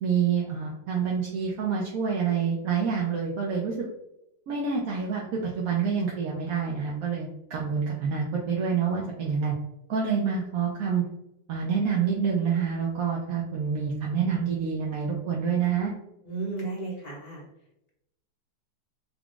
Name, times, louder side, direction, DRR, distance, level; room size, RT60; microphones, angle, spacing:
voice 1, 0.0-3.7 4.5-5.3 5.6-9.5 9.9-11.0 11.5-15.9, right 6 dB, 65° right, -3 dB, 0.9 m, -27 dB
voice 2, 16.2-17.4, right 3 dB, 35° left, -5 dB, 0.7 m, -33 dB
3.6 x 2.3 x 3.7 m, 0.84 s
omnidirectional pair, 1.9 m